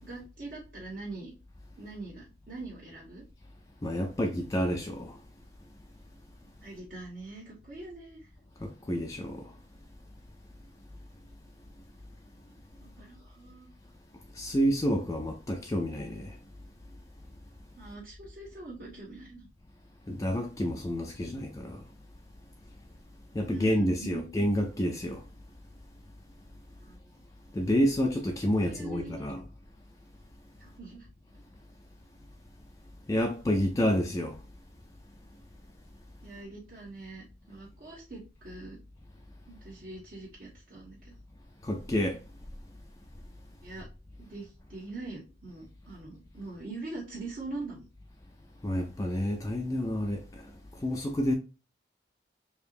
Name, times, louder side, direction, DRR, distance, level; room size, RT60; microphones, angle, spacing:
voice 1, 0.0-1.3 1.8-3.2 6.6-8.3 12.8-13.7 17.8-19.5 23.5-24.3 26.8-27.0 28.6-29.4 30.6-31.1 36.2-38.8 39.5-41.1 43.6-43.9 44.2-47.9, right 3 dB, 55° right, 1.3 m, -43 dB
voice 2, 3.8-5.2 8.6-9.5 14.3-16.4 20.1-21.8 23.3-25.2 27.5-29.4 33.1-34.4 41.6-42.2 48.6-51.3, equal, 20° left, 0.4 m, -29 dB
4.5 x 2.9 x 2.5 m
head